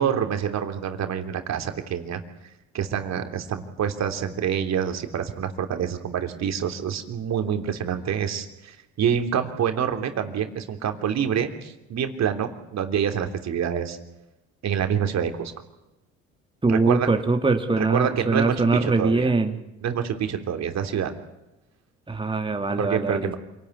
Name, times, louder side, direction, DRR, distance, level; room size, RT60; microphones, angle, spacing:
voice 1, 0.0-2.2 2.7-14.0 14.6-15.5 16.7-17.1 17.8-19.3 19.8-21.1 22.8-23.3, right 8 dB, 55° right, 6 dB, 3.3 m, -27 dB
voice 2, 16.6-19.5 22.1-23.3, right 3 dB, 15° right, 4 dB, 2.6 m, -22 dB
27.5 x 18.5 x 9.7 m, 0.95 s
hypercardioid pair, 60°, 33 cm